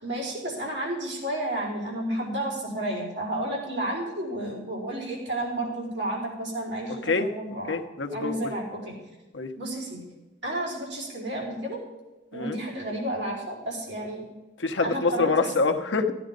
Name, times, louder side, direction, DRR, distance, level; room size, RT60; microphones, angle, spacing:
voice 1, 0.0-7.8 8.1-8.9 9.6-10.0 10.4-11.8 12.3-14.2 14.8-15.5, right 1 dB, 75° right, -4 dB, 4.5 m, -31 dB
voice 2, 7.7-8.5 9.3-9.5 12.3-12.6 14.6-16.1, left 3 dB, 80° left, 6 dB, 1.0 m, -25 dB
14.0 x 9.6 x 5.3 m, 1.1 s
head